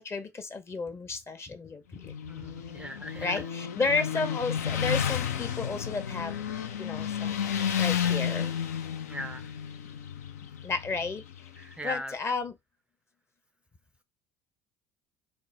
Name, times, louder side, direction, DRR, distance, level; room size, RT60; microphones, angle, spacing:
voice 1, 0.0-2.1 3.2-6.4 6.8-8.5 10.6-11.2 11.8-12.5, left 4 dB, 30° left, 0.7 m, -32 dB
Motorcycle, 2.0-11.7, left 8 dB, 85° left, 0.4 m, -32 dB
voice 2, 2.3-3.4 9.0-9.5 11.6-12.2, equal, 15° right, 0.4 m, -39 dB
3.7 x 2.0 x 3.2 m
hypercardioid pair, 65°, 8 cm